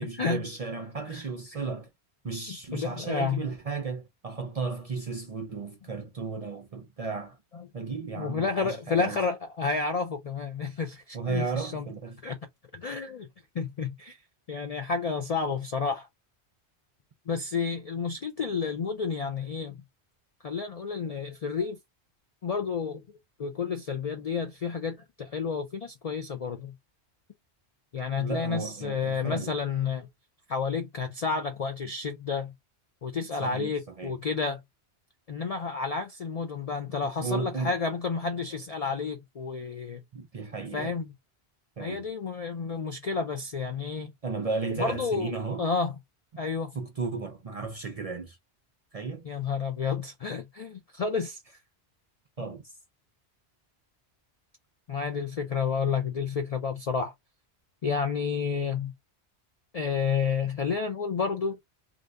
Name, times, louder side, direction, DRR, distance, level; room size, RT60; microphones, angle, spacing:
voice 1, 0.0-1.9 2.2-7.4 7.7-9.2 11.1-12.2 28.2-29.6 33.4-34.2 37.2-37.8 40.1-41.0 41.8-42.1 44.2-45.7 46.7-48.4 48.9-49.3 52.4-52.7, right 4 dB, 50° right, 0.4 m, -34 dB
voice 2, 2.5-3.4 8.1-11.9 12.2-12.4 12.7-13.3 13.5-14.2 14.5-16.1 17.3-19.8 20.4-21.8 22.4-23.0 23.4-26.7 27.9-30.1 30.5-32.5 33.0-34.6 35.3-40.0 40.7-41.1 41.8-44.1 44.8-45.3 45.6-45.9 46.4-46.7 49.2-51.4 54.9-57.1 57.8-58.9 59.7-61.6, left 5 dB, 60° left, 0.4 m, -30 dB
2.6 x 2.5 x 3.3 m
omnidirectional pair, 1.1 m